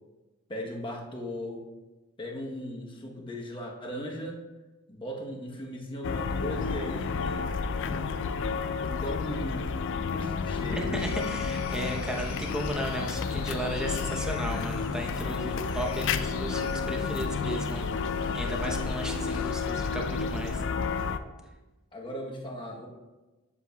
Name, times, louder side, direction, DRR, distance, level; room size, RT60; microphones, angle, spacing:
voice 1, 0.5-1.6 2.2-4.4 4.9-7.5 8.8-11.0 21.9-22.9, left 1 dB, 25° left, -1 dB, 1.0 m, -38 dB
sound 1, 6.0-21.2, left 5 dB, 60° left, 0.4 m, -31 dB
voice 2, 10.8-17.8 18.3-20.6, right 1 dB, 5° right, 0 dB, 0.8 m, -35 dB
sound 2, 11.0-19.6, left 3 dB, 75° left, 0.7 m, -43 dB
8.4 x 7.5 x 2.3 m, 1.1 s
head